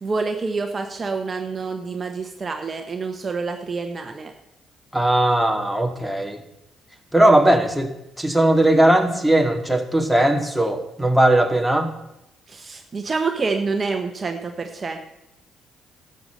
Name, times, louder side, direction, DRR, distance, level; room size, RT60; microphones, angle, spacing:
voice 1, 0.0-4.3 12.5-15.0, right 4 dB, 40° right, 5 dB, 1.2 m, -27 dB
voice 2, 4.9-6.4 7.1-7.9 8.2-11.9, right 1 dB, ahead, 3 dB, 2.1 m, -18 dB
11.5 x 6.9 x 7.7 m, 0.85 s
supercardioid pair, 60°, 0 cm